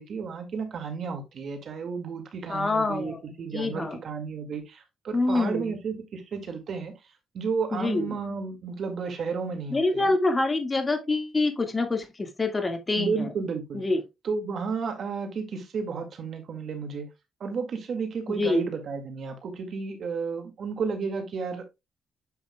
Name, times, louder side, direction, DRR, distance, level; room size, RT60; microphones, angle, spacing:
voice 1, 0.0-6.9 7.3-10.1 13.0-13.8 14.2-17.1 17.4-21.6, right 5 dB, 55° right, 2.0 m, -32 dB
voice 2, 2.5-3.2 3.5-4.0 5.1-5.7 7.7-8.2 9.7-13.3 13.7-14.0 18.3-18.7, left 2 dB, 25° left, 1.9 m, -26 dB
8.0 x 5.8 x 2.3 m
cardioid pair, 90°, 0 cm